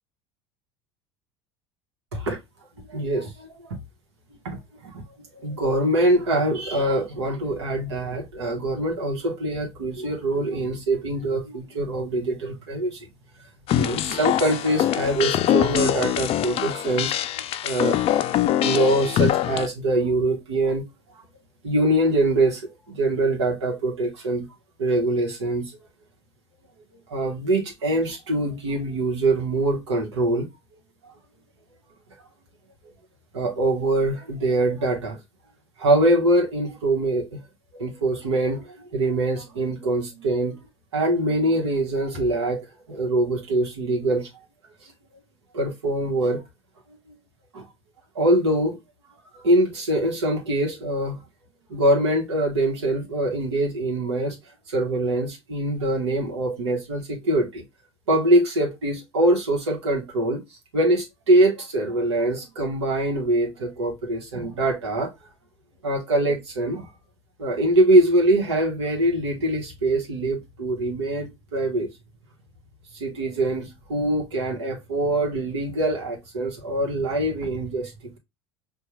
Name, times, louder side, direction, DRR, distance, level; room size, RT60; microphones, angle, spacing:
voice 1, 2.9-3.8 4.4-4.6 4.8-5.0 5.3-13.0 13.8-18.0 18.6-20.8 21.6-24.5 24.8-25.8 27.1-30.5 33.3-35.2 35.8-37.4 37.7-40.6 40.9-44.3 44.8-44.9 45.5-46.4 47.5-47.6 48.1-48.8 49.3-51.2 51.7-54.4 54.7-57.6 58.1-60.4 60.7-65.1 65.8-66.9 67.4-71.9 72.9-77.9, right 1 dB, 90° right, 0.9 m, -23 dB
sound 1, 13.7-19.7, left 11 dB, 45° left, 0.4 m, -23 dB
4.5 x 2.2 x 2.8 m
hypercardioid pair, 80°, 14 cm